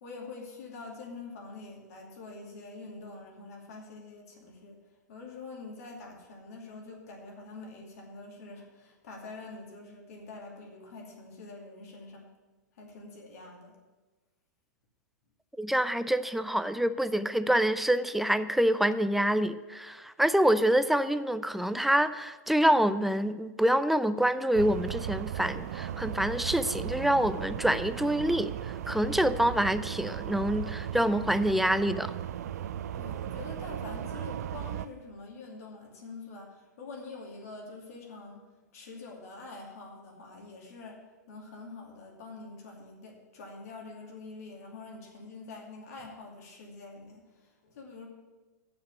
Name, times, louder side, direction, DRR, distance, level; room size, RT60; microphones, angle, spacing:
voice 1, 0.0-4.8 5.1-12.3 12.8-13.7 32.9-38.5 38.7-47.2 47.6-48.1, left 3 dB, 60° left, 0 dB, 2.6 m, -45 dB
voice 2, 15.6-32.1, right 1 dB, ahead, 13 dB, 0.4 m, -26 dB
sound 1, 24.5-34.9, right 10 dB, 60° right, 0.5 m, -36 dB
7.6 x 6.8 x 8.1 m, 1.2 s
hypercardioid pair, 110°, 10 cm